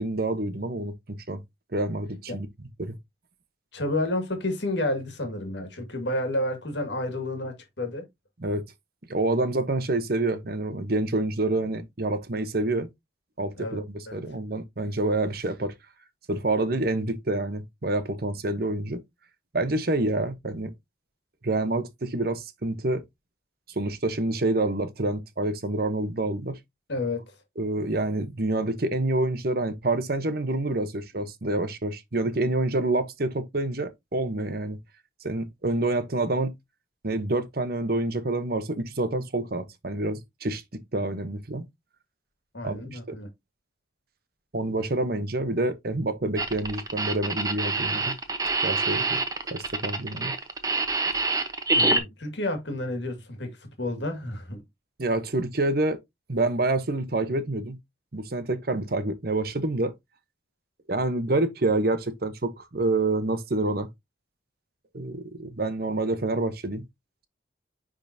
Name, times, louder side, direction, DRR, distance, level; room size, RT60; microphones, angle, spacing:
voice 1, 0.0-1.4 1.7-2.5 2.8-3.0 8.4-8.6 9.1-12.9 13.4-15.7 16.3-19.0 19.5-20.7 21.4-23.0 23.8-26.6 27.6-34.8 35.2-36.5 37.0-40.6 40.9-41.7 42.6-43.1 44.5-48.1 48.6-49.2 49.5-50.3 55.0-56.0 56.3-57.8 58.1-59.9 60.9-63.9 64.9-66.8, right 2 dB, 50° right, 0.9 m, -27 dB
voice 2, 3.7-8.0 13.6-14.2 26.9-27.2 31.2-31.3 42.5-43.3 51.7-54.6, left 1 dB, 65° left, 2.0 m, -30 dB
sound 1, 46.4-52.0, right 3 dB, 20° right, 0.9 m, -26 dB
10.0 x 3.7 x 2.7 m
head